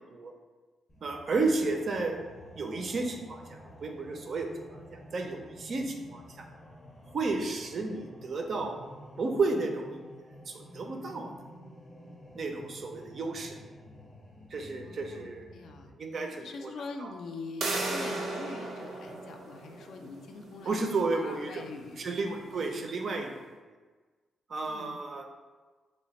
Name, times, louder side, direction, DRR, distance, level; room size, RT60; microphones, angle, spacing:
sound 1, 0.9-15.9, equal, 25° left, 0.6 m, -51 dB
voice 1, 1.0-2.2 2.6-4.5 4.9-6.5 7.1-8.8 9.2-11.3 12.3-13.5 14.5-15.6 16.0-16.7 17.0-17.1 20.7-21.7 22.0-23.5 24.5-25.2, right 3 dB, 40° right, 3 dB, 0.4 m, -32 dB
voice 2, 14.8-22.1 22.5-22.9 24.7-25.0, left 3 dB, 65° left, 4 dB, 0.3 m, -44 dB
sound 2, 17.6-23.2, right 2 dB, 85° right, 0.6 m, -38 dB
3.1 x 2.1 x 4.0 m, 1.4 s
wide cardioid pair, 160°, 0 cm